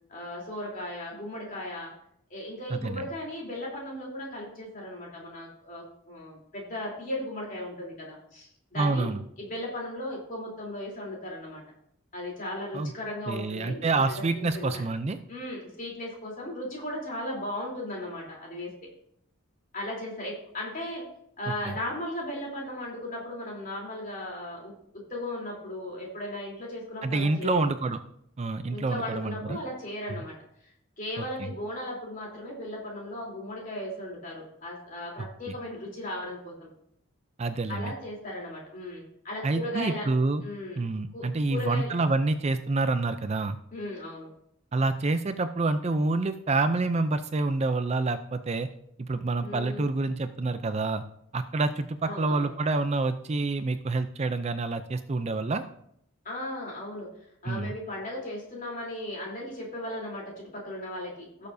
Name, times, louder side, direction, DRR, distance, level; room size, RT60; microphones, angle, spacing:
voice 1, 0.1-1.9 2.3-9.1 9.4-11.6 12.1-14.8 15.3-18.7 19.7-21.0 21.4-27.7 28.7-30.3 30.6-36.7 37.7-40.1 40.4-40.8 41.1-41.9 43.7-44.3 49.4-49.9 52.0-52.5 56.3-57.1 57.4-61.5, left 1 dB, 40° left, -3 dB, 3.5 m, -36 dB
voice 2, 2.7-3.1 8.8-9.2 12.7-12.9 13.3-15.2 21.7-21.8 27.0-28.0 28.4-29.6 31.4-31.5 37.4-37.9 39.4-40.4 40.8-43.6 44.7-48.7 49.0-51.0 51.3-55.6 57.5-57.7, right 3 dB, 30° right, 10 dB, 0.4 m, -27 dB
17.0 x 6.8 x 2.7 m, 0.71 s
head